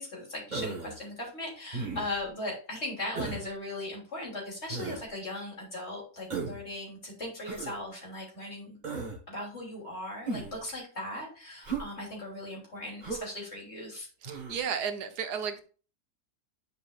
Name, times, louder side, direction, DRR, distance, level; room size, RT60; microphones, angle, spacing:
voice 1, 0.0-8.8 9.3-14.1, left 1 dB, 40° left, -3 dB, 3.3 m, -38 dB
Human voice, 0.5-1.0 1.7-2.2 3.2-3.5 4.7-5.0 6.3-6.6 7.4-7.8 8.8-9.2 10.3-10.6 11.6-11.9 13.0-13.3 14.2-14.6, right 4 dB, 30° right, 1.3 m, -36 dB
voice 2, 14.2-15.6, right 7 dB, 85° right, 8 dB, 1.5 m, -33 dB
9.9 x 5.0 x 2.4 m, 0.37 s
omnidirectional pair, 1.7 m